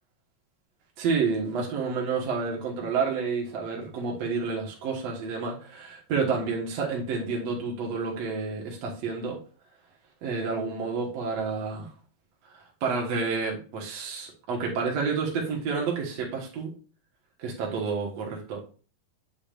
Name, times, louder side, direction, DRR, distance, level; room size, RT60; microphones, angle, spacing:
voice 1, 1.0-9.4 10.2-11.9 12.5-16.7 17.4-18.6, right 5 dB, 60° right, -1 dB, 2.3 m, -29 dB
8.2 x 6.8 x 2.5 m, 0.38 s
omnidirectional pair, 3.7 m